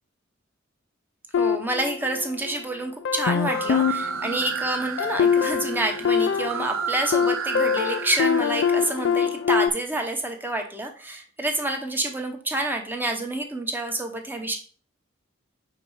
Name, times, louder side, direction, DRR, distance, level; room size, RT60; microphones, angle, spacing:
sound 1, 1.3-2.6 3.0-9.7, left 7 dB, 65° left, 0.4 m, -24 dB
voice 1, 1.4-14.6, right 2 dB, 10° right, 4 dB, 0.8 m, -28 dB
sound 2, 3.4-9.2, right 7 dB, 85° right, 0.4 m, -33 dB
5.3 x 4.3 x 4.8 m, 0.42 s
head